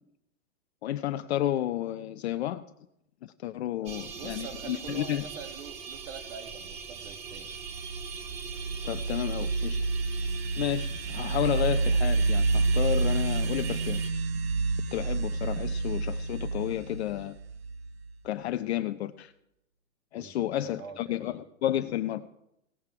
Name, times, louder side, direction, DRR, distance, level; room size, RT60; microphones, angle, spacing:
voice 1, 0.8-2.6 3.2-5.2 8.8-9.8 10.6-14.0 14.9-17.4 18.2-19.3 20.1-22.3, left 12 dB, 55° left, 10 dB, 0.6 m, -31 dB
voice 2, 3.8-7.5 20.1-21.4, right 6 dB, 65° right, 8 dB, 1.6 m, -45 dB
sound 1, 3.9-14.1, right 6 dB, 15° right, 0.6 m, -41 dB
sound 2, 7.5-18.1, right 3 dB, 50° right, 0.9 m, -29 dB
17.5 x 7.4 x 4.7 m, 0.83 s
hypercardioid pair, 145°, 40 cm